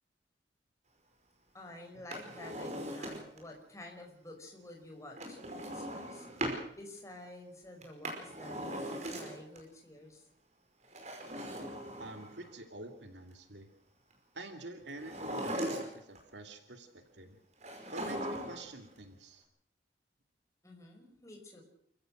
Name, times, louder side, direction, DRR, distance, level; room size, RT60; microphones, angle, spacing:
voice 1, 1.5-6.3 6.7-10.3 20.6-21.6, left 1 dB, 15° left, 1 dB, 5.2 m, -50 dB
Drawer open or close, 1.9-3.5 5.2-6.6 7.8-9.6 10.8-12.5 14.9-16.2 17.6-18.7 19.0-19.1, right 1 dB, 40° right, 5.2 m, -39 dB
voice 2, 12.0-13.7 14.3-16.9 17.1-17.4 17.9-19.4, right 2 dB, 75° right, 5 dB, 2.7 m, -47 dB
29.0 x 15.5 x 6.5 m, 0.66 s
head